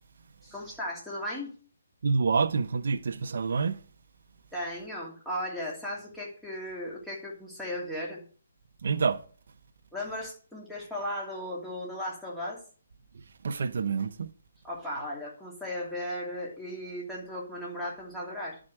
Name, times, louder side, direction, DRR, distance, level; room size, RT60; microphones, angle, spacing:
voice 1, 0.4-1.5 4.5-8.2 9.9-12.6 14.6-18.6, left 1 dB, 5° left, 2.9 m, -36 dB
voice 2, 2.0-3.8 8.8-9.2 13.4-14.3, right 5 dB, 60° right, 0.9 m, -27 dB
11.0 x 5.1 x 7.6 m
hypercardioid pair, 165°, 0 cm